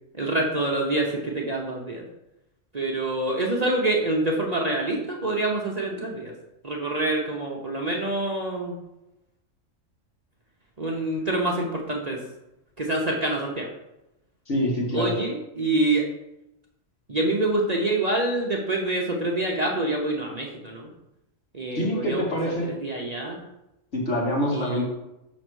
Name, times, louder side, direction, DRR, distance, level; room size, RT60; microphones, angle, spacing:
voice 1, 0.1-2.0 2.7-6.3 6.6-8.7 10.8-12.2 12.8-13.7 14.9-16.0 17.1-20.9 21.5-22.2 22.6-23.4 24.5-24.8, right 2 dB, 35° right, -1 dB, 0.9 m, -26 dB
voice 2, 14.5-15.1 21.8-22.7 23.9-24.8, equal, 60° left, -4 dB, 2.5 m, -25 dB
6.4 x 4.1 x 6.3 m, 0.91 s
omnidirectional pair, 1.4 m